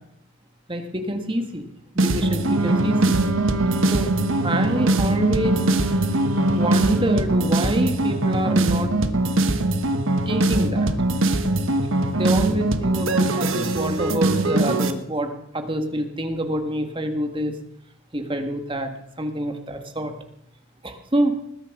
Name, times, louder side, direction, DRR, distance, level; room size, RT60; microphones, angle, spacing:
voice 1, 0.7-1.7 1.9-3.2 3.9-4.1 4.4-6.0 6.5-8.9 10.2-10.9 12.1-17.6 18.1-20.1 20.8-21.4, right 1 dB, 20° right, 6 dB, 1.7 m, -26 dB
sound 1, 2.0-14.9, right 2 dB, 60° right, 1.3 m, -22 dB
Wind instrument woodwind instrument, 2.4-7.2, right 2 dB, 80° right, 1.1 m, -28 dB
20.0 x 10.5 x 6.1 m, 0.78 s
head